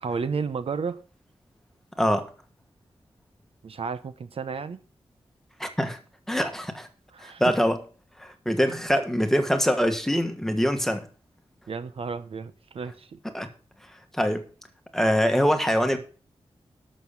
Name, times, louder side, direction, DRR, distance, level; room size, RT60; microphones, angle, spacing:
voice 1, 0.0-1.0 3.6-4.8 7.1-7.4 11.7-13.2, right 5 dB, 65° right, 12 dB, 0.8 m, -32 dB
voice 2, 2.0-2.3 5.6-6.0 6.3-6.9 7.2-7.8 8.2-11.1 13.3-13.5 14.1-14.5 14.9-16.0, equal, 5° left, 6 dB, 1.5 m, -24 dB
12.0 x 6.4 x 7.1 m, 0.39 s
wide cardioid pair, 155°, 10 cm